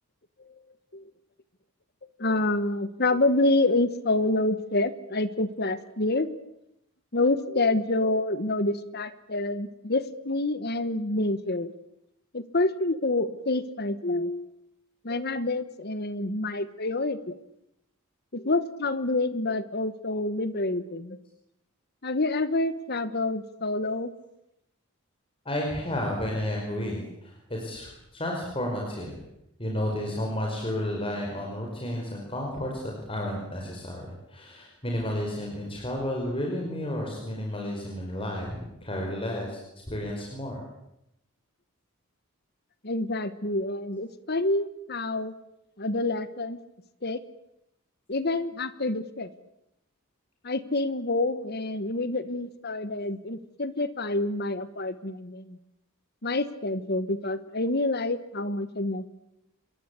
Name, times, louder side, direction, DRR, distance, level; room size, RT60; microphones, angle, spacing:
voice 1, 2.2-6.3 7.1-11.7 12.3-14.5 15.0-17.3 18.3-21.2 22.0-24.1 42.8-45.3 45.8-46.6 47.0-47.2 48.1-49.3 50.4-55.6 56.2-59.0, left 2 dB, 45° left, 14 dB, 1.3 m, -27 dB
voice 2, 25.4-29.2 29.6-32.8 33.1-39.6 39.9-40.6, left 1 dB, 25° left, -1 dB, 5.1 m, -32 dB
26.5 x 22.5 x 8.4 m, 0.83 s
head